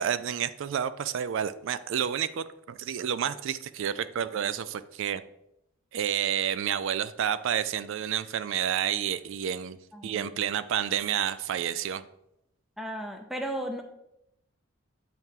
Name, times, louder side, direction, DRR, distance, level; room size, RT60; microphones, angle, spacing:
voice 1, 0.0-5.2 5.9-9.8 10.0-12.0, right 9 dB, 65° right, 14 dB, 0.3 m, -30 dB
voice 2, 12.8-13.8, right 1 dB, ahead, 4 dB, 0.5 m, -34 dB
7.8 x 4.6 x 3.6 m, 0.81 s
head